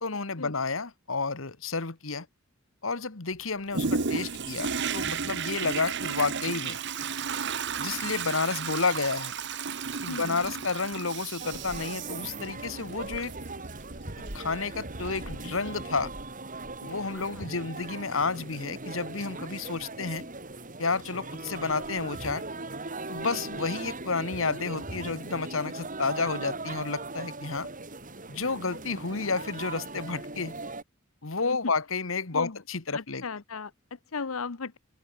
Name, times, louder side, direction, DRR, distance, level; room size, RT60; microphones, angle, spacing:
voice 1, 0.0-2.3 2.8-6.8 7.8-9.3 10.0-13.3 14.3-16.1 16.8-20.3 20.8-22.4 23.1-27.7 28.3-30.5 31.2-33.2, left 4 dB, 70° left, 1.6 m, -31 dB
Toilet flush, 3.7-16.2 16.7-16.8, right 5 dB, 55° right, 1.2 m, -34 dB
voice 2, 10.1-10.5 17.0-17.6 23.2-23.6 31.4-31.7 32.3-32.6 32.9-34.8, left 4 dB, 90° left, 0.9 m, -37 dB
sound 1, 11.4-30.8, right 2 dB, 40° right, 4.8 m, -39 dB
open air
head